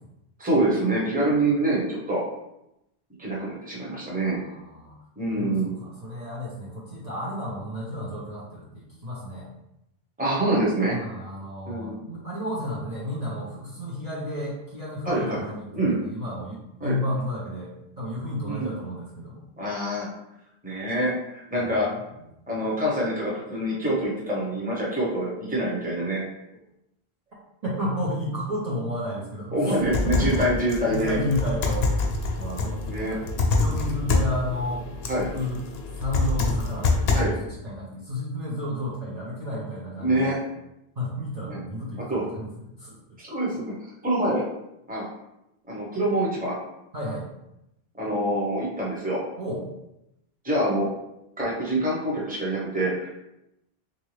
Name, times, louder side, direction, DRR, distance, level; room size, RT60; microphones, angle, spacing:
voice 1, 0.4-2.2 3.2-4.4 5.2-5.7 10.2-11.0 11.7-12.0 15.1-15.4 15.7-16.0 16.8-17.0 18.5-18.7 19.6-20.1 20.6-21.9 22.5-26.2 29.5-31.2 32.9-33.1 35.1-35.3 37.1-37.3 40.0-40.4 41.5-41.6 42.1-42.2 43.2-43.7 44.0-44.4 44.9-45.0 45.7-46.5 48.0-49.2 50.4-50.9 51.4-53.1, right 1 dB, 10° right, -5 dB, 0.9 m, -25 dB
voice 2, 4.2-5.0 5.4-9.5 10.9-19.4 27.6-29.7 30.0-30.3 30.9-32.1 32.4-33.2 33.6-34.9 35.2-35.6 36.0-37.3 37.6-40.4 41.0-43.0 46.9-47.3 49.4-49.6, left 1 dB, 45° right, -7 dB, 0.8 m, -32 dB
sound 1, 29.8-37.2, left 3 dB, 70° left, 0.9 m, -26 dB
3.6 x 2.7 x 3.2 m, 0.86 s
omnidirectional pair, 1.1 m